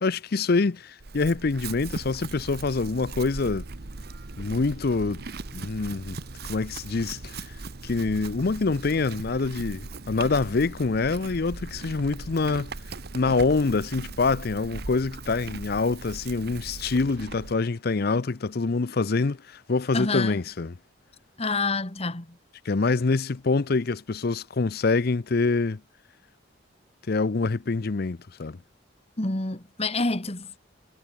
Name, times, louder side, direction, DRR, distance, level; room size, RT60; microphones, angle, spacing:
voice 1, 0.0-3.6 4.4-5.2 5.5-6.2 6.4-7.4 7.8-12.7 13.1-20.7 22.7-25.8 27.1-28.6, left 3 dB, 55° left, 0.6 m, -25 dB
Chewing mastication / Livestock farm animals working animals, 1.0-17.6, right 3 dB, 55° right, 1.1 m, -39 dB
voice 2, 19.9-20.4 21.4-22.4 29.2-30.6, left 3 dB, 35° left, 1.9 m, -28 dB
head